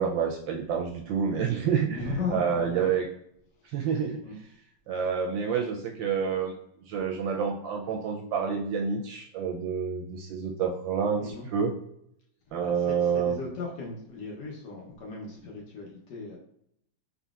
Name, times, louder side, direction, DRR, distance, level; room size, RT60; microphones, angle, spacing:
voice 1, 0.0-2.0 2.3-3.1 3.7-4.2 4.9-6.5 6.9-11.7 12.5-13.3, right 6 dB, 75° right, 1 dB, 1.2 m, -28 dB
voice 2, 1.9-2.9 3.8-3.9 4.2-4.4 11.2-11.5 12.6-16.4, left 4 dB, 60° left, -1 dB, 1.3 m, -37 dB
4.1 x 3.7 x 2.4 m, 0.73 s
omnidirectional pair, 2.3 m